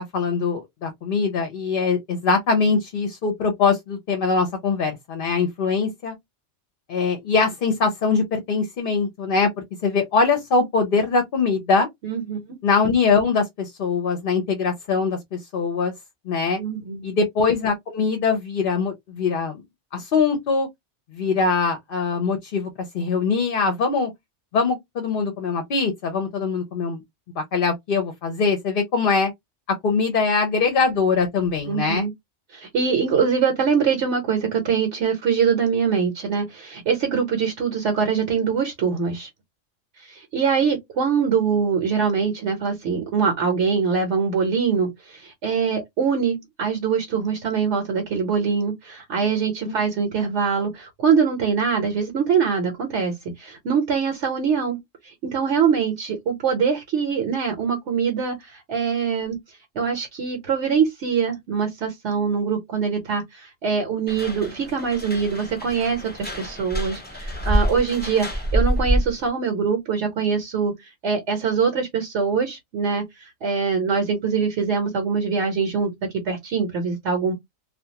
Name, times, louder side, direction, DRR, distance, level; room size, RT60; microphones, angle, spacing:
voice 1, 0.1-6.1 6.9-11.9 12.6-15.9 16.3-16.6 17.0-19.6 19.9-20.7 21.1-24.1 24.5-27.0 27.4-29.3 29.7-32.1, left 4 dB, 55° left, 0.7 m, -22 dB
voice 2, 12.0-12.6 16.6-17.1 31.7-32.1 32.5-39.3 40.0-59.4 59.7-70.7 71.0-75.9 76.2-77.3, right 6 dB, 70° right, 1.1 m, -23 dB
sound 1, 64.1-69.3, equal, 15° left, 0.5 m, -26 dB
2.4 x 2.3 x 2.7 m
omnidirectional pair, 1.2 m